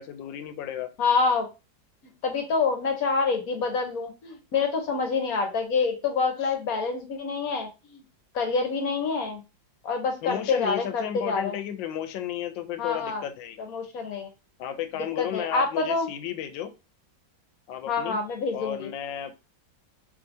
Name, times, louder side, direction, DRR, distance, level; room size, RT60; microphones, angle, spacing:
voice 1, 0.0-0.9 10.2-13.6 14.6-16.7 17.7-18.2 18.5-19.4, left 10 dB, 80° left, 10 dB, 1.3 m, -33 dB
voice 2, 1.0-1.5 2.2-8.0 8.3-9.4 9.8-11.6 12.8-13.2 13.6-14.3 15.2-16.1 17.9-18.9, left 4 dB, 60° left, 4 dB, 1.1 m, -27 dB
4.8 x 3.1 x 2.6 m, 0.28 s
omnidirectional pair, 2.0 m